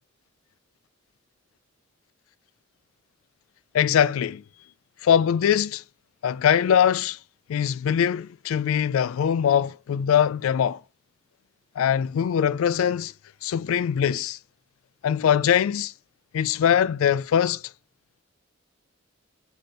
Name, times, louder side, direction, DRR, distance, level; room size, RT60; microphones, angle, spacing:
voice 1, 3.7-4.4 5.0-5.8 6.2-7.2 7.5-10.8 11.8-13.1 13.4-14.4 15.0-15.9 16.3-17.6, left 8 dB, 85° left, 0.3 m, -22 dB
5.8 x 3.6 x 5.0 m
head